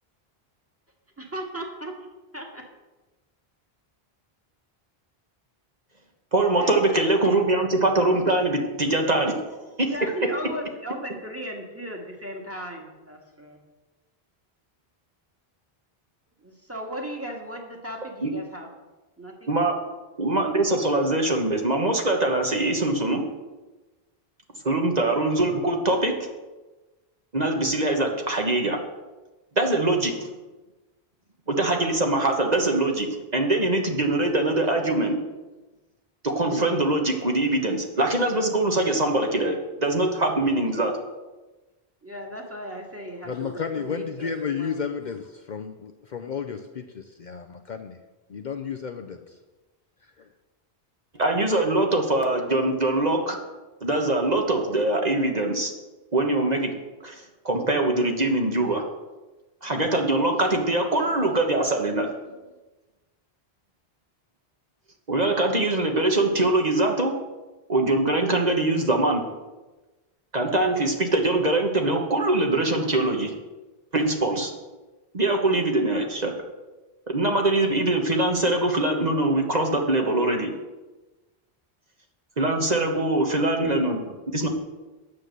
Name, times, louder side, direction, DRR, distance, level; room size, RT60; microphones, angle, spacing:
voice 1, 1.2-1.9 2.3-2.6 6.6-6.8 7.2-7.4 9.9-13.6 16.4-18.7 19.2-19.5 42.0-44.9, equal, 15° right, 0 dB, 1.9 m, -36 dB
voice 2, 6.3-9.3 9.8-10.1 18.2-18.3 19.5-19.7 20.2-23.2 24.6-26.1 27.3-28.8 29.5-30.3 31.5-33.1 33.3-35.2 36.2-40.9 51.2-53.4 53.8-55.7 56.1-56.7 57.0-58.8 59.6-62.1 65.1-67.1 67.7-69.2 70.3-73.3 73.9-74.5 75.1-76.3 77.1-80.5 82.4-84.5, right 2 dB, 45° right, 2 dB, 1.4 m, -23 dB
voice 3, 43.2-48.0 48.3-49.2 50.2-50.3, left 6 dB, 50° left, 5 dB, 0.7 m, -32 dB
9.6 x 7.9 x 6.7 m, 1.2 s
omnidirectional pair, 1.0 m